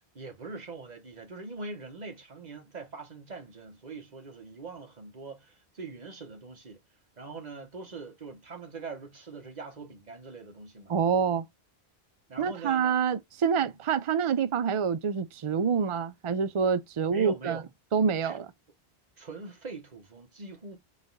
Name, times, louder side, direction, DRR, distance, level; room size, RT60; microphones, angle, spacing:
voice 1, 0.1-6.8 7.2-10.9 12.3-12.9 13.6-13.7 17.1-17.6 18.2-18.4 19.2-20.8, right 4 dB, 40° right, 1.3 m, -42 dB
voice 2, 10.9-11.5 12.4-17.6 17.9-18.5, right 6 dB, 55° right, 0.3 m, -27 dB
4.0 x 2.3 x 3.9 m
omnidirectional pair, 1.1 m